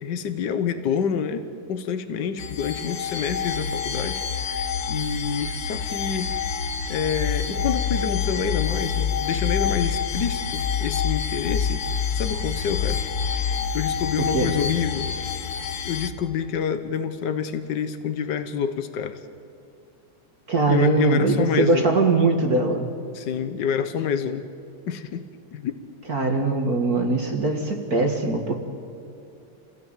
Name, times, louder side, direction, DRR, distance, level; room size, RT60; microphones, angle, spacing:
voice 1, 0.0-6.3 6.9-11.8 12.1-13.0 13.7-15.1 15.8-19.2 20.7-22.0 23.1-24.4 24.9-25.8, left 7 dB, 80° left, 10 dB, 0.9 m, -28 dB
sound 1, 2.4-16.1, left 7 dB, 60° left, 1.3 m, -27 dB
voice 2, 20.5-22.9 26.1-28.5, right 3 dB, 35° right, 4 dB, 1.8 m, -21 dB
27.0 x 17.0 x 9.0 m, 2.5 s
omnidirectional pair, 3.4 m